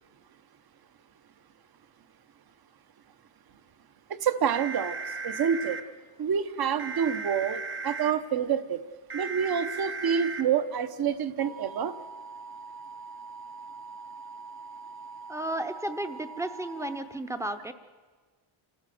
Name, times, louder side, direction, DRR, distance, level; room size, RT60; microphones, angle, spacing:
voice 1, 4.1-5.0 5.2-5.8 6.2-8.8 9.1-12.0, right 7 dB, 50° right, 12 dB, 1.0 m, -27 dB
sound 1, 4.5-5.8 6.8-8.1 9.1-10.4 11.4-17.0, right 4 dB, 25° right, 1.0 m, -39 dB
voice 2, 15.3-17.7, right 1 dB, 5° right, 9 dB, 0.7 m, -33 dB
29.0 x 13.0 x 7.7 m, 1.4 s
wide cardioid pair, 180°, 50 cm